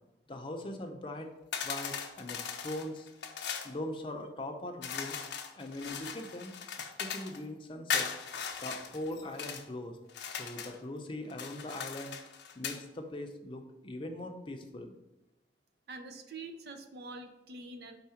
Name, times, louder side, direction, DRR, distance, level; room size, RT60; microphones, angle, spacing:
voice 1, 0.3-1.3 1.6-3.1 3.6-5.2 5.6-8.1 8.6-10.0 10.4-12.1 12.5-14.9, left 1 dB, 30° left, 4 dB, 0.6 m, -41 dB
sound 1, 1.5-3.7 4.8-7.4 7.9-9.6 10.1-10.8 11.3-12.8, left 7 dB, 80° left, 0.6 m, -38 dB
voice 2, 15.9-18.0, right 3 dB, 60° right, 6 dB, 0.6 m, -45 dB
4.7 x 3.6 x 5.6 m, 0.98 s
head